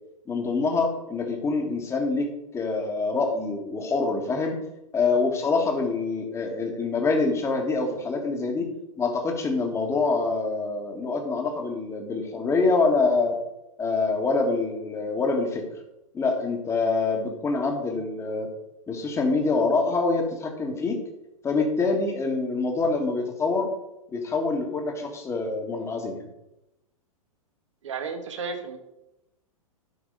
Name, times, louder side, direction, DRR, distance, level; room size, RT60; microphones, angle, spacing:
voice 1, 0.3-2.3 2.5-4.6 4.9-8.7 9.0-13.4 13.8-15.6 16.1-18.5 18.9-21.0 21.4-23.7 24.1-26.3, left 3 dB, 15° left, 3 dB, 1.7 m, -25 dB
voice 2, 27.8-28.8, right 5 dB, 60° right, 6 dB, 1.6 m, -33 dB
13.0 x 6.0 x 4.0 m, 0.91 s
figure-of-eight pair, 100°, 18 cm